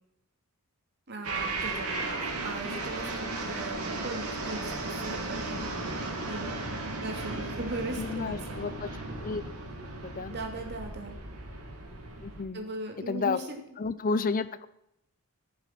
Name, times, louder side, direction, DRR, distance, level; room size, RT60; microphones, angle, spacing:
voice 1, 1.1-5.8 6.3-6.7 7.0-8.7 10.3-11.2 12.5-13.6, right 2 dB, 50° right, 2 dB, 2.6 m, -39 dB
sound 1, 1.2-12.4, right 2 dB, 85° right, 2.6 m, -35 dB
voice 2, 8.0-8.9 9.2-9.4 10.0-10.3 12.2-12.7 13.1-13.4 13.8-14.7, left 4 dB, 40° left, 14 dB, 0.5 m, -31 dB
16.0 x 7.0 x 6.0 m, 0.79 s
head